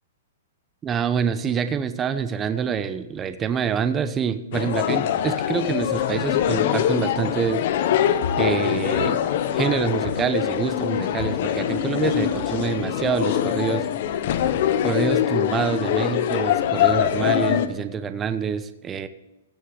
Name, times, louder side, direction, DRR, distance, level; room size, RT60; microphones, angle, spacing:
voice 1, 0.8-7.6 8.4-9.2 9.5-13.8 14.8-19.1, right 7 dB, 15° right, 10 dB, 0.8 m, -26 dB
sound 1, 4.5-17.7, left 10 dB, 50° left, 1.0 m, -23 dB
16.5 x 6.3 x 6.9 m, 0.98 s
hypercardioid pair, 150°, 0 cm